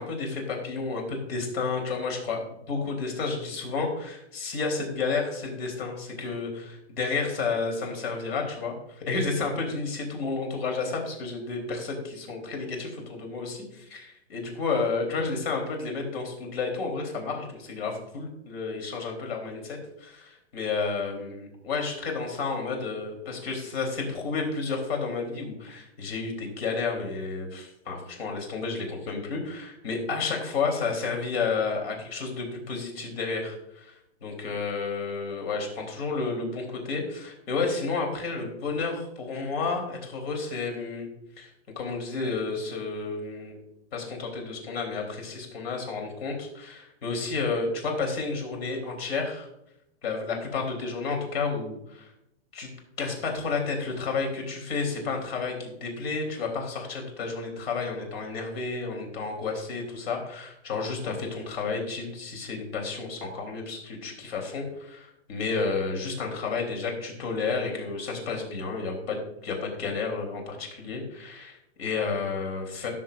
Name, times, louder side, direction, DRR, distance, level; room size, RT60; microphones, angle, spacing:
voice 1, 0.0-2.4 2.7-33.9 34.2-41.1 41.4-41.5 41.8-43.6 43.9-49.5 50.0-52.1 52.5-52.7 53.0-72.9, left 4 dB, 60° left, 2 dB, 3.7 m, -31 dB
17.0 x 6.6 x 2.6 m, 0.82 s
hypercardioid pair, 140°, 34 cm